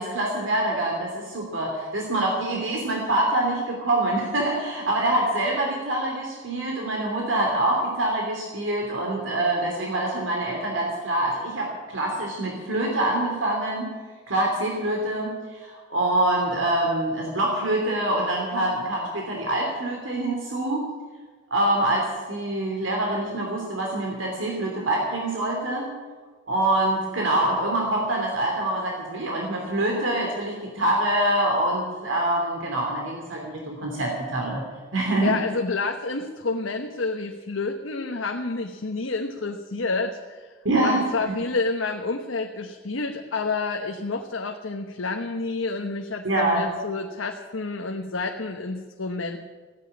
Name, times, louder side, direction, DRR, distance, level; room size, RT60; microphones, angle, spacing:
voice 1, 0.0-13.9 14.3-20.8 21.5-25.9 26.5-34.6 34.9-35.3 40.6-41.3 46.2-46.7, right 1 dB, 70° right, 0 dB, 2.8 m, -25 dB
voice 2, 35.2-40.5 40.8-49.4, left 3 dB, 85° left, 3 dB, 1.0 m, -29 dB
15.5 x 9.4 x 9.6 m, 1.4 s
head